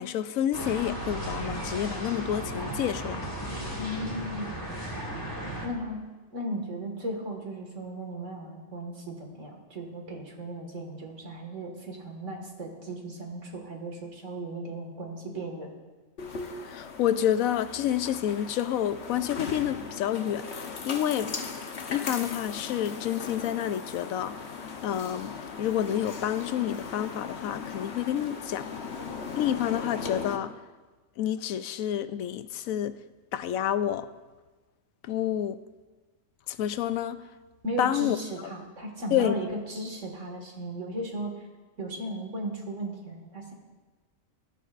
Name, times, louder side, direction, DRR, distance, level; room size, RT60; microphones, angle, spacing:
voice 1, 0.0-3.3 16.7-21.3 21.9-24.4 24.8-28.7 29.3-30.5 31.2-33.0 33.3-34.1 35.1-35.6 36.5-37.2 37.8-38.2 38.4-38.5 39.1-39.5, left 10 dB, 85° left, 1.0 m, -29 dB
sound 1, 0.5-5.7, right 1 dB, 15° left, 2.2 m, -35 dB
voice 2, 3.8-4.5 5.6-6.0 6.3-15.7 37.6-41.3 41.8-43.5, right 1 dB, 65° right, 2.2 m, -36 dB
sound 2, 16.2-30.4, left 5 dB, 55° left, 1.2 m, -38 dB
19.0 x 12.5 x 2.5 m
omnidirectional pair, 1.4 m